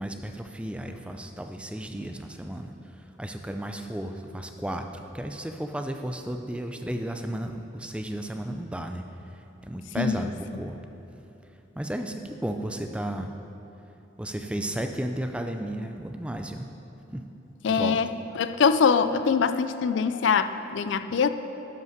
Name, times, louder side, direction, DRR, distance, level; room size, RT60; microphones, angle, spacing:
voice 1, 0.0-10.8 11.7-13.3 14.2-16.7 17.1-17.2 17.7-18.0, right 1 dB, 5° right, 5 dB, 0.4 m, -34 dB
voice 2, 10.0-10.3 17.6-18.1 18.4-21.3, left 6 dB, 80° left, 11 dB, 0.4 m, -23 dB
10.5 x 5.4 x 6.5 m, 2.9 s
head